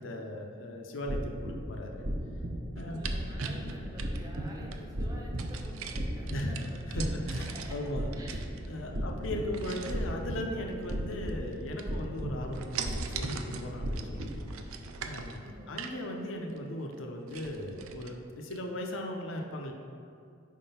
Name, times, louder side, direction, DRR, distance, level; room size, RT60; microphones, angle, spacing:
voice 1, 0.0-2.1 2.7-3.0 6.3-6.6 6.9-8.1 8.7-14.3 14.5-14.8 15.0-19.7, left 1 dB, 65° left, 2 dB, 0.6 m, -38 dB
sound 1, 1.0-14.6, equal, 50° right, 0.7 m, -36 dB
voice 2, 2.7-7.1 7.7-7.8 8.2-8.4 8.8-9.2 15.4-15.7, equal, 15° right, -2 dB, 0.7 m, -48 dB
sound 2, 2.8-4.8 5.4-7.9 8.1-9.0 9.5-10.1 10.8-11.5 11.8-12.2 12.5-16.0 16.5-16.6 16.9-17.0 17.3-18.1 18.5-18.6, right 6 dB, 80° right, 0.4 m, -41 dB
5.0 x 3.7 x 5.5 m, 2.3 s
head